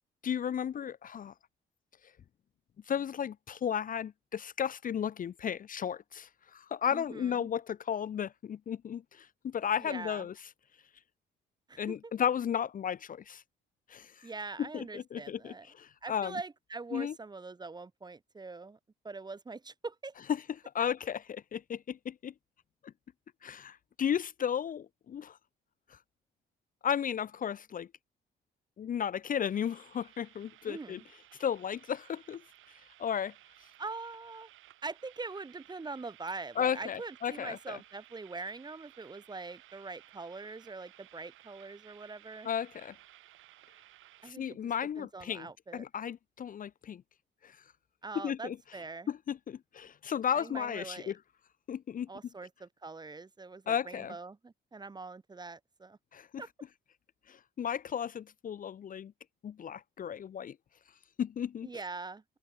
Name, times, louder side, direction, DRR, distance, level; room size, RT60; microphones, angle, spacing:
voice 1, 0.2-1.3 2.9-10.3 11.8-13.4 13.9-14.3 14.7-16.4 16.9-17.1 20.7-22.3 22.8-22.9 23.4-25.4 26.8-27.9 28.8-31.0 31.4-32.4 33.0-33.3 36.6-37.8 42.4-43.0 44.2-45.5 45.7-47.0 47.4-47.5 48.2-48.6 49.1-51.2 51.7-52.1 53.7-54.1 56.1-56.4 57.3-59.1 59.4-60.6 61.2-61.7, left 8 dB, 45° left, 0.6 m, -34 dB
voice 2, 6.9-7.5 9.8-10.3 11.7-12.1 14.2-15.7 16.0-18.8 19.0-20.1 30.6-31.0 33.8-34.5 34.8-42.5 44.2-45.8 48.0-49.1 50.3-51.1 52.1-56.0 56.4-56.5 61.6-62.2, right 3 dB, 20° right, 0.8 m, -43 dB
sound 1, 29.5-44.3, right 14 dB, 85° right, 5.5 m, -58 dB
open air
cardioid pair, 90°, 20 cm